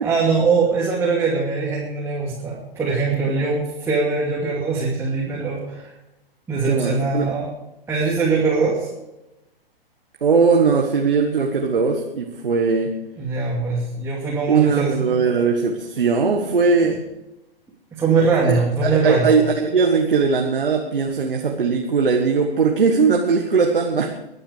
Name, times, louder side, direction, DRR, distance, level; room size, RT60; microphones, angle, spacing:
voice 1, 0.0-5.9 6.5-7.5 7.9-8.9 13.2-15.3 16.4-16.5 16.8-16.9 17.9-19.3, right 4 dB, 10° right, -5 dB, 2.6 m, -22 dB
voice 2, 6.6-7.3 10.2-12.9 14.5-17.0 18.5-24.1, right 5 dB, 65° right, 2 dB, 1.7 m, -19 dB
22.5 x 8.9 x 4.9 m, 0.95 s
figure-of-eight pair, 115°, 29 cm